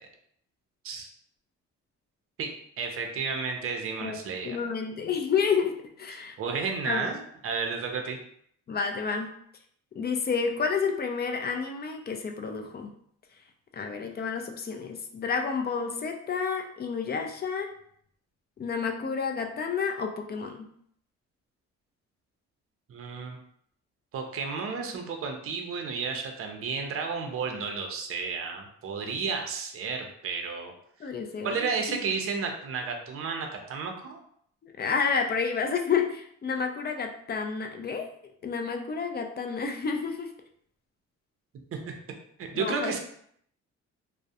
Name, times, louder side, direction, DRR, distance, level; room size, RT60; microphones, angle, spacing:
voice 1, 2.4-4.6 6.4-8.2 22.9-23.4 24.1-30.7 31.4-34.2 41.7-41.9 42.4-43.0, right 5 dB, 50° right, 3 dB, 0.5 m, -32 dB
voice 2, 4.4-6.3 6.9-7.1 8.7-9.3 10.0-12.9 13.7-17.7 18.6-20.7 31.0-32.0 34.6-38.1 38.4-40.3 42.5-43.0, left 5 dB, 35° left, 4 dB, 0.4 m, -30 dB
2.3 x 2.1 x 2.7 m, 0.66 s
cardioid pair, 90°, 30 cm